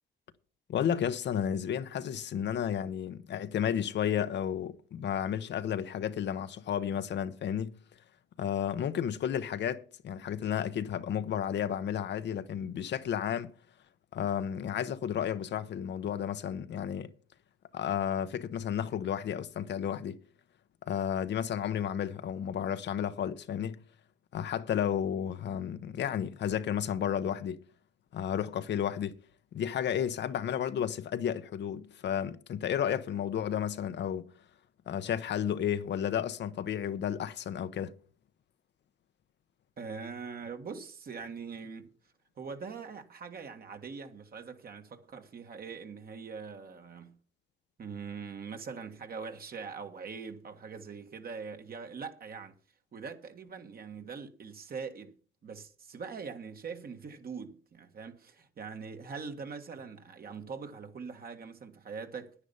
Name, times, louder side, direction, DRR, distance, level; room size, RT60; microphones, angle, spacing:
voice 1, 0.7-7.8 8.4-13.5 14.1-17.1 17.7-20.2 20.9-23.8 24.3-27.6 28.1-29.1 29.5-34.3 34.9-37.9, left 9 dB, 65° left, 0.9 m, -32 dB
voice 2, 39.8-41.9 42.4-47.1 47.8-52.6 52.9-55.1 55.4-62.3, right 5 dB, 50° right, 1.6 m, -42 dB
9.9 x 9.9 x 5.4 m
cardioid pair, 90°, 20 cm